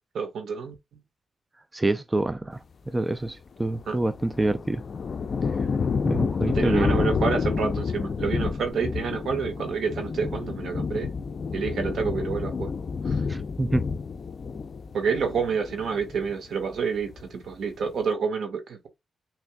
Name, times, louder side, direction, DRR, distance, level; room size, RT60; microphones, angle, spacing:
voice 1, 0.1-0.7 3.9-4.0 6.5-11.1 11.5-12.7 13.0-13.2 14.9-18.9, right 5 dB, 80° right, 1.4 m, -28 dB
voice 2, 1.7-4.8 6.0-7.0 13.3-13.9, right 2 dB, 20° right, 0.4 m, -27 dB
sound 1, 3.7-16.5 16.8-17.4, left 5 dB, 55° left, 0.5 m, -29 dB
6.0 x 3.3 x 2.2 m
cardioid pair, 90°, 0 cm